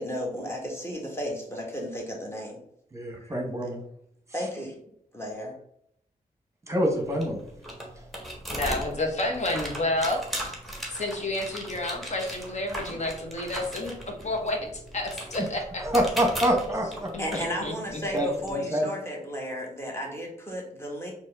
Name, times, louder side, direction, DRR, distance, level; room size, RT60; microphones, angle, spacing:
voice 1, 0.0-2.6 3.2-3.7 4.3-4.8 5.1-5.6 17.2-21.1, equal, 15° left, -1 dB, 1.5 m, -34 dB
voice 2, 2.9-3.8 6.7-7.4 8.0-8.1 15.8-17.1 18.1-18.9, equal, 20° right, 2 dB, 1.2 m, -26 dB
sound 1, 6.8-18.5, right 1 dB, ahead, 1.3 m, -38 dB
voice 3, 8.5-10.2 10.9-14.0 14.2-15.8 17.1-18.3, left 2 dB, 50° left, 2 dB, 1.1 m, -30 dB
4.2 x 3.0 x 3.5 m, 0.71 s
cardioid pair, 65°, 15 cm